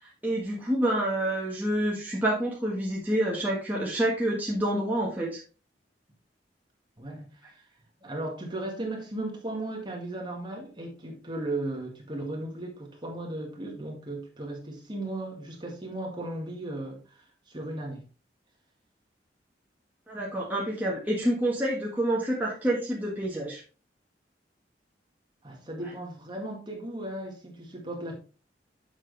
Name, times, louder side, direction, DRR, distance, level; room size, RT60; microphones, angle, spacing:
voice 1, 0.0-5.4 20.1-23.6, right 1 dB, 10° right, 1.6 m, -28 dB
voice 2, 7.0-7.6 8.0-18.0 25.4-28.1, right 1 dB, 25° right, 1.9 m, -36 dB
7.4 x 6.1 x 3.3 m
head